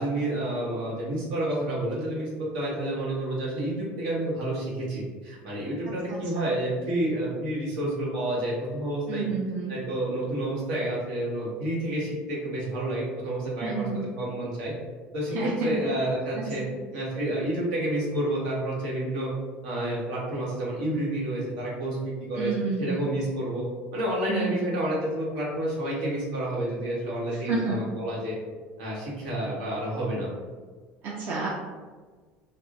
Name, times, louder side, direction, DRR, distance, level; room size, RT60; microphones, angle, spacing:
voice 1, 0.0-9.3 9.7-14.7 15.1-16.6 16.9-19.3 19.6-23.7 23.9-28.4 28.8-30.3, right 1 dB, 80° right, -5 dB, 1.4 m, -29 dB
voice 2, 9.1-9.8 13.6-14.1 15.3-15.7 16.3-16.7 22.4-23.1 24.3-24.6 27.5-27.7 31.0-31.5, right 4 dB, 50° right, -5 dB, 0.6 m, -30 dB
3.5 x 2.1 x 3.7 m, 1.4 s
cardioid pair, 125°, 5 cm